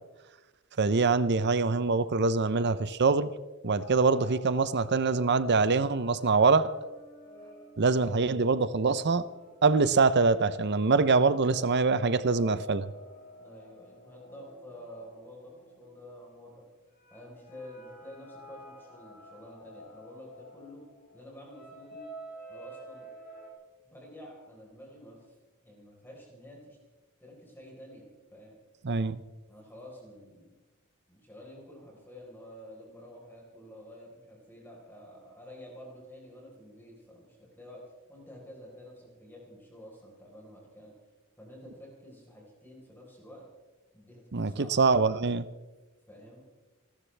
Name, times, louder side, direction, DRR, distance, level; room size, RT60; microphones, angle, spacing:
voice 1, 0.8-3.3 3.6-6.7 7.8-9.3 9.6-12.9 28.8-29.2 44.3-45.5, right 4 dB, 50° right, 0.7 m, -24 dB
sound 1, 3.8-16.3 17.0-23.5, equal, 45° left, 4.5 m, -50 dB
voice 2, 13.4-16.6 17.1-20.8 21.1-22.1 22.5-23.1 23.8-25.4 25.6-26.8 27.2-28.6 29.5-30.6 31.1-37.8 38.1-40.9 41.4-43.5 43.9-44.9 46.1-46.4, equal, 10° left, 4.3 m, -49 dB
29.0 x 13.5 x 3.4 m
head